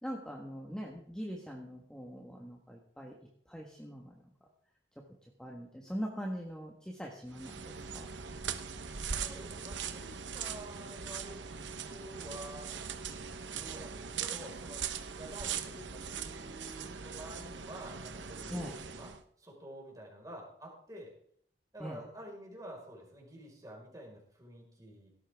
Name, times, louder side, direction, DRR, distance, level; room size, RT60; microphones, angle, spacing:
voice 1, 0.0-3.2 3.4-4.3 5.0-5.1 5.4-8.1 18.5-18.8 21.8-22.0, equal, 5° left, -1 dB, 1.4 m, -42 dB
sound 1, 7.3-19.2, right 6 dB, 80° right, 1.0 m, -41 dB
voice 2, 9.2-11.4 11.9-12.8 13.5-19.1 19.4-21.1 21.7-25.1, right 1 dB, 20° right, -2 dB, 4.8 m, -49 dB
17.5 x 13.5 x 3.5 m, 0.65 s
head